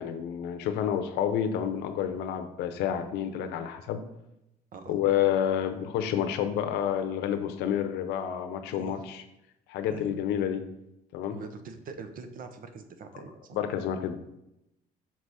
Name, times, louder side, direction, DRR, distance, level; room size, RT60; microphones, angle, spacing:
voice 1, 0.0-4.0 4.9-9.2 9.7-10.6 11.1-11.4 13.5-14.2, left 9 dB, 85° left, 9 dB, 0.7 m, -29 dB
voice 2, 8.7-9.0 9.9-10.1 11.3-13.6, right 5 dB, 55° right, 8 dB, 0.9 m, -43 dB
6.1 x 4.8 x 4.1 m, 0.86 s
cardioid pair, 110°, 17 cm